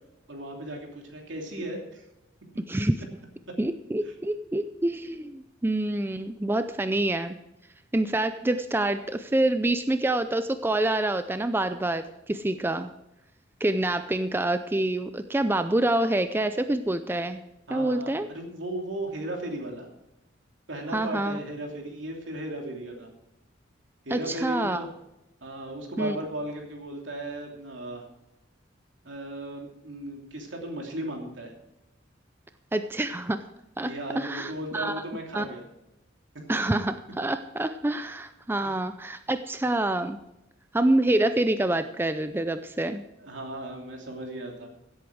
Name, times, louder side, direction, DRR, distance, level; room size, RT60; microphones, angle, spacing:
voice 1, 0.3-2.0 4.0-4.1 17.7-19.9 20.7-23.1 24.0-24.9 25.4-28.0 29.0-31.5 33.8-35.6 38.6-38.7 43.2-44.7, right 1 dB, 75° right, 1 dB, 2.9 m, -36 dB
voice 2, 2.6-3.0 3.6-7.3 7.9-12.9 13.6-17.4 17.7-18.3 20.9-21.4 24.1-24.8 26.0-26.2 32.7-33.4 33.8-34.9 35.3-35.5 36.5-40.2 40.7-43.0, right 1 dB, 10° right, 10 dB, 0.4 m, -26 dB
16.5 x 8.5 x 4.7 m, 0.90 s
head